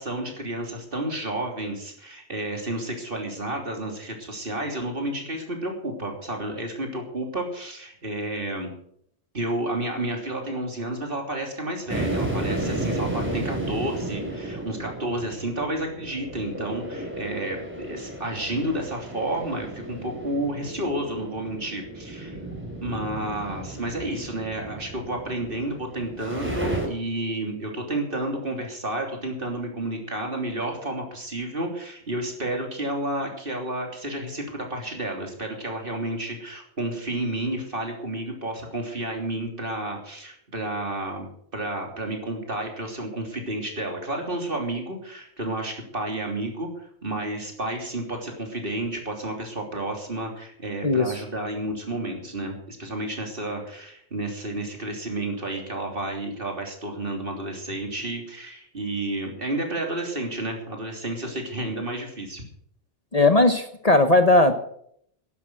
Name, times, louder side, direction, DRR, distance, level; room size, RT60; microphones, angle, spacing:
voice 1, 0.0-8.7 9.3-22.4 22.8-41.3 41.5-62.4, right 1 dB, 50° right, 2 dB, 3.5 m, -31 dB
sound 1, 11.9-26.9, right 1 dB, 10° right, 3.2 m, -33 dB
voice 2, 63.1-64.5, left 2 dB, 35° left, 8 dB, 1.1 m, -18 dB
12.0 x 10.5 x 7.8 m, 0.67 s
omnidirectional pair, 1.2 m